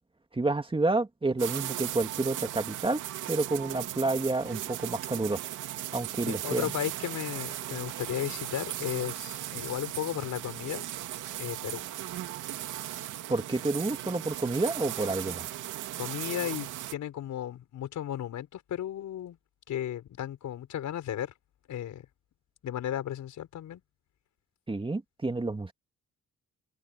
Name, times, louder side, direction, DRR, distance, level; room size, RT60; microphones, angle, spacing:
voice 1, 0.3-3.0 3.3-5.5 5.9-6.7 13.3-15.5 24.7-25.7, right 2 dB, 15° right, 2.3 m, -29 dB
sound 1, 1.4-16.9, right 13 dB, 85° right, 2.7 m, -37 dB
voice 2, 6.3-10.9 11.2-11.8 16.0-19.4 19.7-21.3 21.7-22.1 22.6-23.8, left 11 dB, 75° left, 6.0 m, -35 dB
cardioid pair, 90°, 30 cm